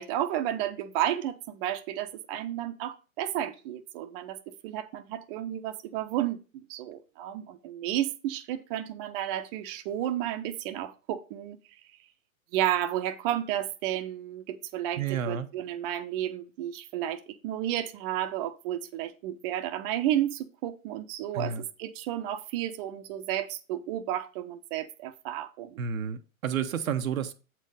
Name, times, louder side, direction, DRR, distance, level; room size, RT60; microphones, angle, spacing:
voice 1, 0.0-11.6 12.5-25.8, right 12 dB, 40° right, 0.9 m, -32 dB
voice 2, 15.0-15.5 21.3-21.6 25.8-27.3, right 7 dB, 75° right, 0.9 m, -30 dB
8.0 x 4.6 x 4.9 m
hypercardioid pair, 115°, 41 cm